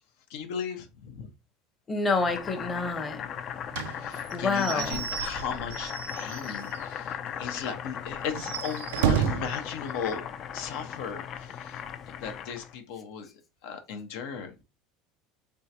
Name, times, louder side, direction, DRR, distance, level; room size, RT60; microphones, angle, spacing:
voice 1, 0.3-1.3 4.0-13.3 13.6-14.6, left 7 dB, 75° left, 0.8 m, -37 dB
voice 2, 1.9-3.2 4.3-5.0, left 4 dB, 20° left, 0.8 m, -28 dB
Boiling, 2.1-12.7, left 8 dB, 40° left, 0.4 m, -37 dB
Slam / Squeak / Wood, 3.7-6.9 7.3-7.4 7.7-7.8 8.3-9.6, right 9 dB, 90° right, 0.4 m, -31 dB
3.6 x 3.3 x 2.8 m
supercardioid pair, 125°, 0 cm